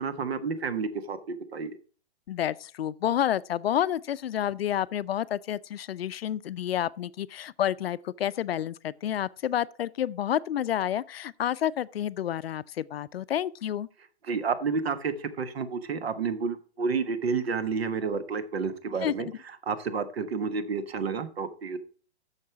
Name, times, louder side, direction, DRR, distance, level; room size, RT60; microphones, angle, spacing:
voice 1, 0.0-1.8 14.3-19.3 19.6-21.8, right 5 dB, 65° right, 1.4 m, -30 dB
voice 2, 2.3-13.9 19.0-19.1, left 11 dB, 65° left, 0.5 m, -29 dB
8.6 x 6.5 x 4.5 m
hypercardioid pair, 165°, 33 cm